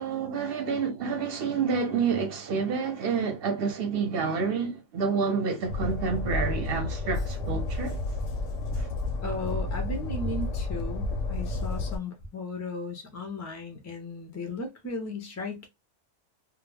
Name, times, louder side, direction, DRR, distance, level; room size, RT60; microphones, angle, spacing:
voice 1, 0.0-7.9, right 5 dB, 60° right, 0.7 m, -28 dB
Train, 5.7-12.0, left 2 dB, 90° left, 0.9 m, -31 dB
voice 2, 9.2-15.7, left 2 dB, 25° left, 0.3 m, -36 dB
2.3 x 2.1 x 3.1 m
omnidirectional pair, 1.3 m